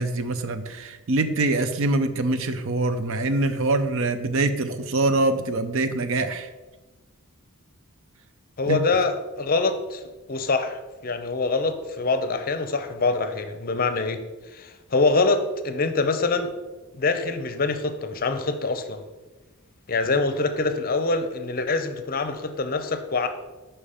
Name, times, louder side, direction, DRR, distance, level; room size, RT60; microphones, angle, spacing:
voice 1, 0.0-6.5 8.7-8.8, right 2 dB, 60° right, 10 dB, 0.6 m, -24 dB
voice 2, 8.6-10.0 10.3-14.2 14.5-16.5 16.9-19.0 19.9-23.3, left 3 dB, 40° left, 9 dB, 0.6 m, -25 dB
5.6 x 5.1 x 5.6 m, 1.2 s
head